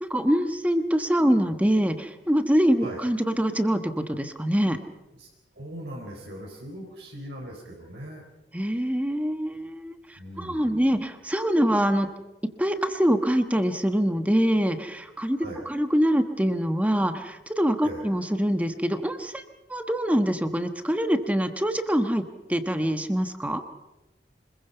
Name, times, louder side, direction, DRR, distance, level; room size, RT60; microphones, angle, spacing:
voice 1, 0.0-4.8 8.5-12.1 12.4-19.4 19.7-23.6, equal, 10° right, 7 dB, 1.3 m, -24 dB
voice 2, 5.5-8.2 10.2-10.9 15.4-15.7 17.8-18.0, right 1 dB, 75° right, -1 dB, 4.3 m, -40 dB
25.5 x 21.5 x 5.6 m, 1.0 s
head